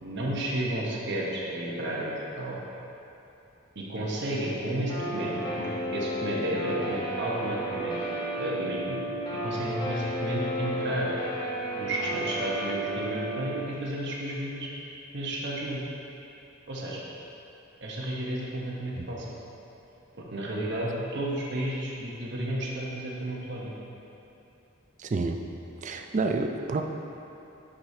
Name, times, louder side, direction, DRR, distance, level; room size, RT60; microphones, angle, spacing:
voice 1, 0.0-2.6 3.7-8.0 8.4-9.1 9.4-11.1 11.8-14.7 15.1-15.8 16.7-17.0 17.8-19.3 20.2-23.7, right 1 dB, 55° right, -4 dB, 0.9 m, -32 dB
Guitar, 4.9-13.6, right 1 dB, 20° left, 1.0 m, -32 dB
voice 2, 25.0-25.4 25.8-26.8, right 3 dB, 35° right, 5 dB, 0.4 m, -29 dB
10.5 x 4.9 x 2.7 m, 2.9 s
head